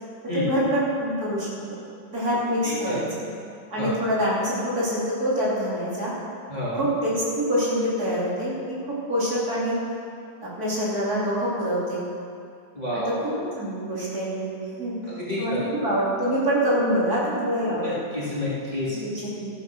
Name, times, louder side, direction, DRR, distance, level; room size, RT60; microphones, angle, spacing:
voice 1, 0.3-1.5 2.1-3.3 3.7-6.1 6.7-9.8 10.4-12.0 12.9-15.0 15.4-18.0 18.9-19.5, equal, 50° right, -7 dB, 3.7 m, -25 dB
voice 2, 2.6-3.1 3.8-3.9 6.5-6.8 12.7-13.2 15.1-15.6 17.6-19.0, left 1 dB, 20° left, -8 dB, 2.7 m, -29 dB
13.0 x 9.7 x 6.3 m, 2.3 s
omnidirectional pair, 2.1 m